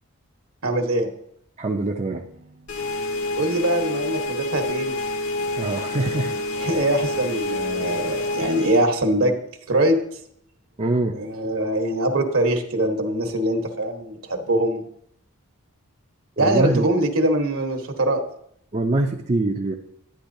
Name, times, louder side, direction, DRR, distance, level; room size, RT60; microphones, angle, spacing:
voice 1, 0.6-1.1 3.4-5.0 6.6-9.3 9.7-10.0 11.2-14.8 16.4-18.2, right 1 dB, 70° right, 4 dB, 1.1 m, -22 dB
voice 2, 1.6-2.6 5.6-6.3 10.8-11.2 16.4-16.9 18.7-19.7, right 2 dB, 30° right, 2 dB, 0.5 m, -24 dB
sound 1, 2.7-8.8, left 2 dB, 75° left, 1.7 m, -27 dB
11.5 x 9.2 x 2.7 m, 0.69 s
head